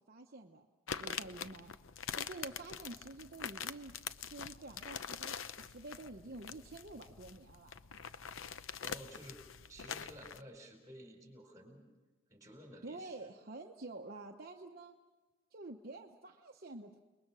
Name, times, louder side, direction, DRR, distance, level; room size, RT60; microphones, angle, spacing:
voice 1, 0.1-0.7 1.0-1.7 2.2-3.9 4.3-7.7 12.8-14.9 15.5-17.0, right 2 dB, 50° right, 2 dB, 1.0 m, -49 dB
sound 1, 0.9-10.4, left 7 dB, 75° left, 0.7 m, -44 dB
voice 2, 8.8-9.4 9.7-11.8 12.3-13.2, equal, 15° right, 2 dB, 5.1 m, -53 dB
29.5 x 21.0 x 6.3 m, 1.2 s
head